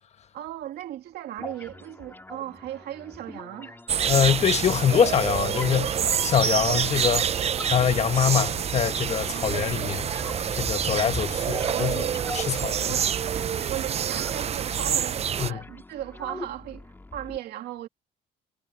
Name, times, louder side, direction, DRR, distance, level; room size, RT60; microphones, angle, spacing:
voice 1, 0.3-3.8 9.3-10.1 11.7-12.2 12.8-17.9, right 13 dB, 70° right, 2.4 m, -37 dB
sound 1, 1.4-17.4, left 2 dB, 10° left, 2.5 m, -43 dB
sound 2, 3.9-15.5, right 8 dB, 40° right, 0.7 m, -27 dB
voice 2, 4.0-7.3 7.7-10.2 10.5-12.0 12.3-12.8 15.4-15.6, left 8 dB, 40° left, 1.2 m, -24 dB
cardioid pair, 110°, 17 cm